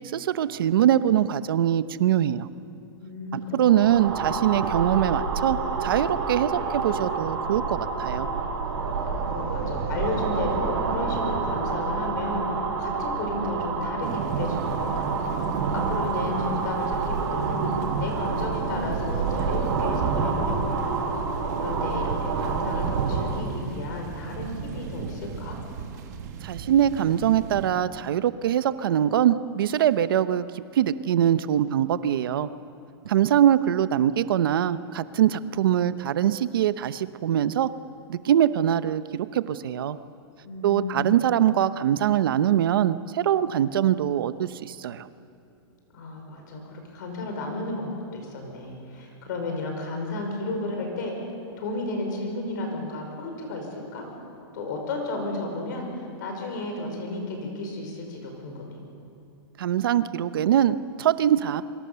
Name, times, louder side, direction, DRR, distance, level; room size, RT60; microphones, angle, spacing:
voice 1, 0.1-2.5 3.3-8.3 26.4-32.5 33.0-37.7 38.1-40.0 40.6-45.1 59.6-61.6, right 10 dB, 60° right, 13 dB, 0.9 m, -23 dB
voice 2, 3.0-3.6 4.0-4.1 9.3-15.1 15.7-17.6 18.0-20.9 21.6-25.6 40.4-41.1 45.9-51.1 51.6-54.1 54.5-58.8, left 2 dB, 45° left, 2 dB, 5.4 m, -33 dB
sound 1, 3.6-23.5, right 4 dB, 80° right, 5.7 m, -28 dB
sound 2, 14.0-27.7, right 5 dB, 40° right, 2.2 m, -33 dB
28.0 x 24.5 x 7.0 m, 2.8 s
supercardioid pair, 180°, 13 cm